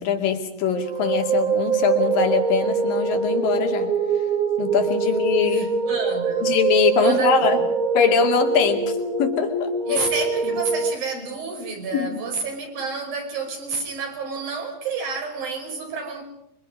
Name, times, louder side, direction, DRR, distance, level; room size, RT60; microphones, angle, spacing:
voice 1, 0.0-3.9 4.6-5.7 6.4-7.6 7.9-10.1 10.4-10.5 11.9-12.3, left 7 dB, 75° left, 4 dB, 4.2 m, -22 dB
sound 1, 0.7-10.9, right 5 dB, 50° right, 1.0 m, -24 dB
voice 2, 5.5-6.5 7.0-7.5 9.9-16.2, right 4 dB, 75° right, 2 dB, 7.0 m, -30 dB
27.0 x 24.5 x 5.3 m, 0.80 s
omnidirectional pair, 4.1 m